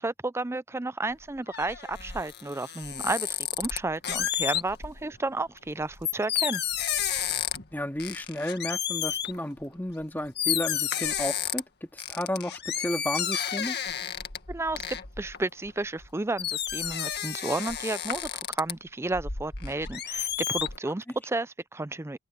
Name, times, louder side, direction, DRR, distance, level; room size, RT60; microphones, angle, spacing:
voice 1, 0.0-6.6 14.5-22.2, right 2 dB, 10° right, 0.4 m, -32 dB
sound 1, 1.1-5.0 5.6-7.7 8.0-9.4 10.0-10.1 10.4-11.6 12.0-16.1 16.4-18.7 19.1-20.8, left 9 dB, 50° left, 1.9 m, -31 dB
voice 2, 7.7-13.8, left 1 dB, 10° left, 2.5 m, -32 dB
open air
head